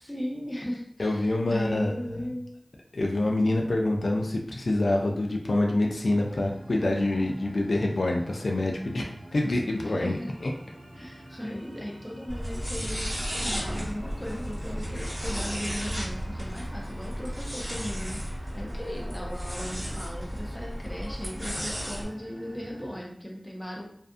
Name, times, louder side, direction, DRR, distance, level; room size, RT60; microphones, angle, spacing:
voice 1, 0.0-2.6 9.8-10.3 10.9-23.8, equal, 5° left, -2 dB, 0.8 m, -37 dB
voice 2, 1.0-2.0 2.9-10.5, left 2 dB, 85° left, 1 dB, 0.3 m, -26 dB
sound 1, 6.2-23.0, right 1 dB, 40° right, 1.1 m, -47 dB
sound 2, 12.3-22.0, equal, 20° right, 1.4 m, -34 dB
2.5 x 2.4 x 2.4 m, 0.65 s
wide cardioid pair, 55°, 0 cm